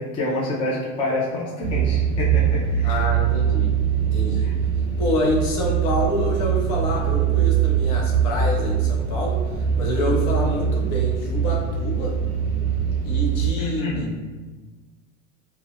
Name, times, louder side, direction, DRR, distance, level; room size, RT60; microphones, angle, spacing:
voice 1, 0.0-3.1 4.4-4.6 13.6-14.2, left 2 dB, 15° left, -5 dB, 0.3 m, -27 dB
sound 1, 1.6-13.5, right 8 dB, 40° right, 0.9 m, -22 dB
voice 2, 2.8-4.5 5.0-12.1 13.0-14.2, left 1 dB, 50° left, -1 dB, 0.8 m, -27 dB
2.3 x 2.2 x 3.5 m, 1.3 s
supercardioid pair, 120°, 39 cm